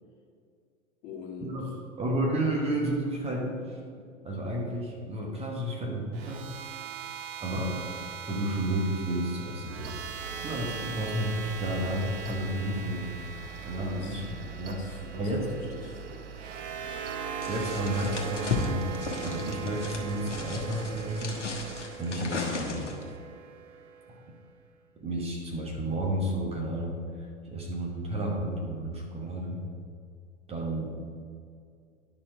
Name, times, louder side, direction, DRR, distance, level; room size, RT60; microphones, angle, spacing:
voice 1, 1.0-1.8 10.3-10.5 13.8-14.3 14.6-16.3, left 4 dB, 45° left, -2 dB, 1.9 m, -45 dB
voice 2, 2.0-3.8 4.2-6.5 7.4-10.0 10.4-13.1 13.6-14.2 14.6-14.8 15.1-15.5 17.5-18.9 19.2-22.9 24.1-24.2 25.0-29.6 30.5-31.0, right 1 dB, 15° right, -1 dB, 1.2 m, -32 dB
sound 1, 6.1-24.3, right 7 dB, 45° right, 0.7 m, -40 dB
Mechanical fan, 9.8-21.8, right 8 dB, 80° right, 0.5 m, -45 dB
sound 2, 17.4-23.1, left 4 dB, 80° left, 1.3 m, -35 dB
11.0 x 4.4 x 4.8 m, 2.3 s
figure-of-eight pair, 95°, 36 cm